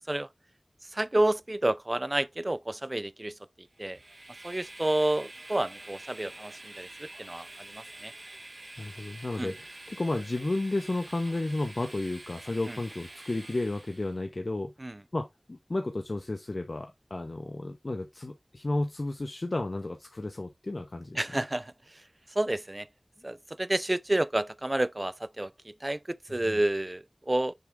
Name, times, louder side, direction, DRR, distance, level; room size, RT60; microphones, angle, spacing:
voice 1, 0.9-3.3 3.8-4.0 4.4-8.1 9.4-9.5 12.7-12.8 14.8-15.0 21.2-22.0 22.3-22.9 23.2-27.5, right 1 dB, 40° right, 0.5 m, -30 dB
Train, 3.7-14.2, right 2 dB, 60° right, 1.3 m, -47 dB
voice 2, 8.8-14.7 15.1-21.4 26.5-26.6, left 2 dB, 70° left, 1.0 m, -33 dB
6.7 x 3.5 x 4.7 m
wide cardioid pair, 50°, 0 cm